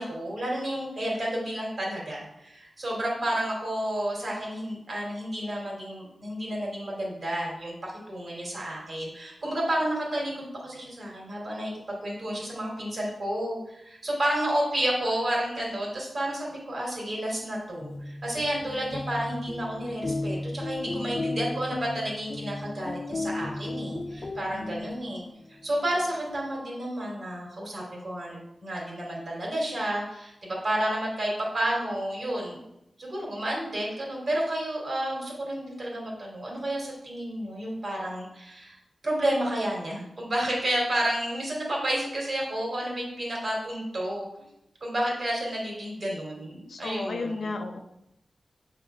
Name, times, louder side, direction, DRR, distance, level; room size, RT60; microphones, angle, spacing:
voice 1, 0.0-11.7 12.0-25.2 25.6-32.6 33.0-38.8 39.0-44.3 44.8-47.4, right 1 dB, 55° right, -3 dB, 2.6 m, -31 dB
sound 1, 17.6-25.3, left 2 dB, 40° left, 0.5 m, -35 dB
voice 2, 46.7-47.8, left 3 dB, 75° left, 5 dB, 0.7 m, -33 dB
7.3 x 3.8 x 4.5 m, 0.83 s
wide cardioid pair, 120°, 0 cm